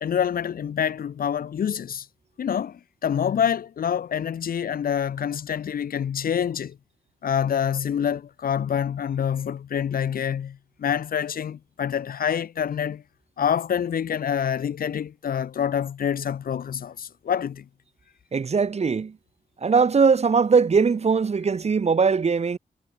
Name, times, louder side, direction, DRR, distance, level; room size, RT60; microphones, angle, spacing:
voice 1, 0.0-2.1 2.4-6.8 7.2-13.0 13.4-17.7, left 8 dB, 65° left, 0.5 m, -26 dB
voice 2, 18.3-19.1 19.6-22.6, right 5 dB, 40° right, 0.7 m, -20 dB
cardioid pair, 75°, 16 cm